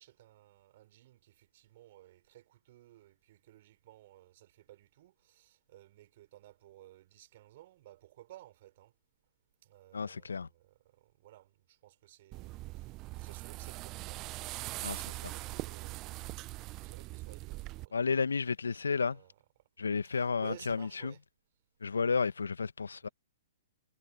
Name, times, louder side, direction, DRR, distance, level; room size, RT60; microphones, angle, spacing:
voice 1, 0.0-8.9 9.6-18.0 18.7-18.8 19.1-19.4 20.0-21.2 22.0-22.3 23.0-23.1, right 15 dB, 50° right, 5.9 m, -56 dB
voice 2, 9.9-10.5 14.8-15.0 17.9-19.2 19.8-21.1 21.8-23.1, left 5 dB, 75° left, 1.4 m, -32 dB
sound 1, 12.3-17.9, right 20 dB, 30° right, 0.7 m, -42 dB
figure-of-eight pair, 120°, 0 cm